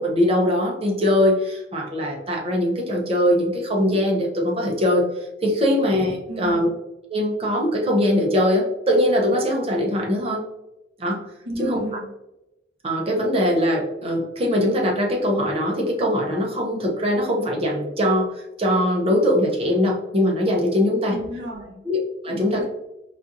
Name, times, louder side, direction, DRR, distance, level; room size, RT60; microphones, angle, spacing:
voice 1, 0.0-5.1 5.4-6.7 7.1-10.4 11.0-11.2 11.6-11.8 12.8-21.2 21.9-22.6, left 1 dB, 35° right, -1 dB, 0.7 m, -21 dB
voice 2, 6.3-6.6 11.4-12.1 21.1-21.8 22.3-22.7, equal, 85° right, -3 dB, 1.3 m, -33 dB
4.2 x 2.4 x 2.5 m, 0.93 s
head